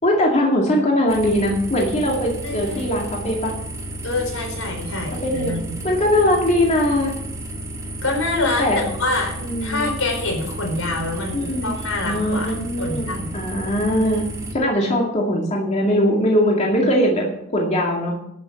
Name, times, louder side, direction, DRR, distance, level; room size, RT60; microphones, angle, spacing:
voice 1, 0.0-3.5 5.2-5.6 5.8-7.1 8.6-8.8 9.4-9.8 11.3-11.7 12.1-14.2 14.5-17.2 17.5-18.2, left 1 dB, 35° left, -1 dB, 2.3 m, -20 dB
sound 1, 1.1-14.5, right 1 dB, 15° right, 2.1 m, -32 dB
voice 2, 2.4-2.8 4.0-5.7 8.0-12.5 12.8-13.3, left 2 dB, 80° left, 1 dB, 4.6 m, -26 dB
12.5 x 6.6 x 7.6 m, 0.75 s
head